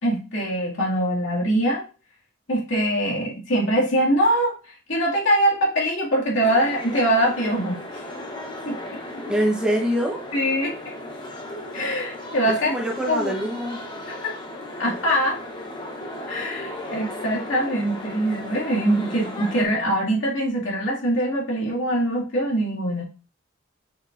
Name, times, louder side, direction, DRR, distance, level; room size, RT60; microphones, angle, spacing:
voice 1, 0.0-1.8 2.5-4.6 4.9-7.8 8.6-9.0 10.3-10.9 11.7-12.7 13.1-13.3 14.1-14.3 14.8-15.4 16.3-23.0, right 1 dB, 75° left, -4 dB, 2.3 m, -23 dB
sound 1, 6.4-19.6, left 1 dB, 20° left, 1.0 m, -36 dB
voice 2, 9.3-10.2 12.5-13.8, equal, 5° right, -1 dB, 0.9 m, -24 dB
7.0 x 6.4 x 2.6 m, 0.34 s
head